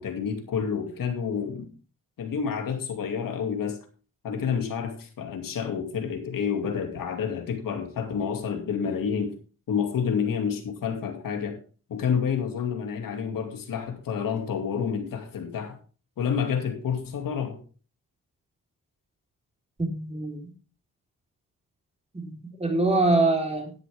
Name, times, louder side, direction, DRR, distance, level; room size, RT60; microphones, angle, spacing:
voice 1, 0.0-1.7 2.2-3.8 4.2-9.3 9.7-11.6 11.9-15.8 16.2-17.6, left 7 dB, 90° left, 2.5 m, -29 dB
voice 2, 19.8-20.5 22.1-22.3 22.6-23.7, right 2 dB, 20° right, 4.0 m, -24 dB
12.5 x 10.5 x 3.6 m
cardioid pair, 90°, 33 cm